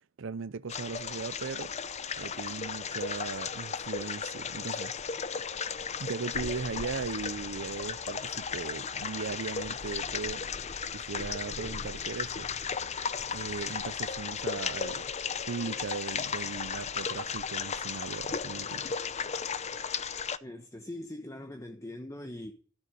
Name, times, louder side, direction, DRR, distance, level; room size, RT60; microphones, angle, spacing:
voice 1, 0.2-1.7 2.2-4.9 6.0-10.5 10.9-12.5 13.3-15.1 15.5-19.0, right 5 dB, 65° right, 0.5 m, -38 dB
sound 1, 0.7-20.4, left 6 dB, 35° left, 0.6 m, -35 dB
sound 2, 7.0-14.5, equal, 20° right, 2.5 m, -58 dB
voice 2, 20.4-22.5, left 1 dB, 15° left, 1.0 m, -41 dB
13.5 x 6.8 x 9.8 m
head